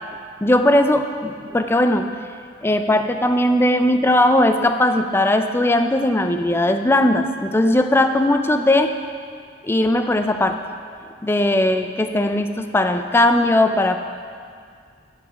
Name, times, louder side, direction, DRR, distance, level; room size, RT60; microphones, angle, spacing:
voice 1, 0.4-2.1 2.6-8.9 9.6-10.6 11.2-14.0, left 1 dB, 15° left, 7 dB, 0.3 m, -18 dB
8.0 x 7.2 x 4.9 m, 2.2 s
head